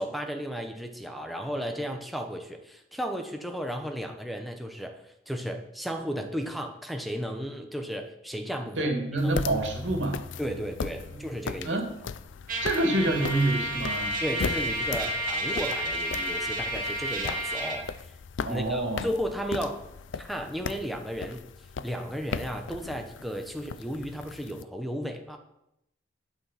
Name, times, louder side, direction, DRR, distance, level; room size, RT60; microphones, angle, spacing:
voice 1, 0.0-8.9 9.2-9.5 10.4-11.8 14.2-18.1 18.4-19.9 20.2-21.4 21.8-25.4, equal, ahead, 3 dB, 1.0 m, -34 dB
voice 2, 8.8-10.2 11.1-11.2 11.6-11.9 12.6-14.1 18.4-19.1, right 2 dB, 85° right, 3 dB, 2.5 m, -27 dB
sound 1, 9.2-24.6, left 5 dB, 80° left, 0.5 m, -38 dB
Trumpet, 12.5-17.8, right 1 dB, 50° right, 2.4 m, -31 dB
11.5 x 8.9 x 5.8 m, 0.83 s
head